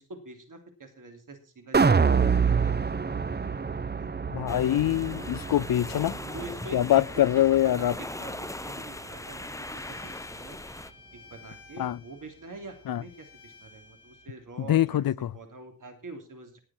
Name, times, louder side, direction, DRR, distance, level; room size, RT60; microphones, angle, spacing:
voice 1, 0.0-4.1 5.9-10.6 11.1-16.6, right 3 dB, 65° right, 3.1 m, -45 dB
sound 1, 1.7-8.0 8.3-8.4, right 5 dB, 30° right, 0.7 m, -27 dB
voice 2, 4.3-6.1 6.7-7.9 11.8-12.0 12.9-13.0 14.7-15.3, left 12 dB, 85° left, 0.5 m, -24 dB
sound 2, 4.5-10.9, left 1 dB, 10° left, 0.7 m, -40 dB
Bowed string instrument, 8.3-14.3, left 6 dB, 60° left, 3.1 m, -54 dB
19.0 x 7.5 x 4.3 m
wide cardioid pair, 100°, 34 cm